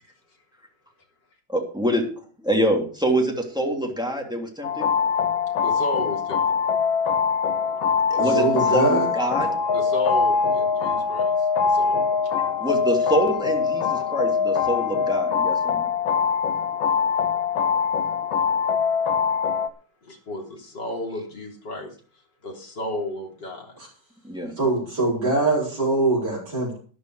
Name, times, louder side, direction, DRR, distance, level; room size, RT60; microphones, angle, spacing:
voice 1, 1.5-2.0 2.4-4.8 8.1-9.5 12.6-15.9 24.2-24.5, right 1 dB, ahead, 1 dB, 2.9 m, -25 dB
sound 1, 4.6-19.7, left 6 dB, 70° left, 1.7 m, -23 dB
voice 2, 5.6-6.4 9.7-12.0 20.0-22.0 22.4-23.8, left 1 dB, 55° left, 0 dB, 4.0 m, -33 dB
voice 3, 8.2-9.1 24.6-26.8, right 2 dB, 50° right, -7 dB, 5.5 m, -23 dB
12.5 x 11.0 x 4.8 m, 0.41 s
omnidirectional pair, 2.3 m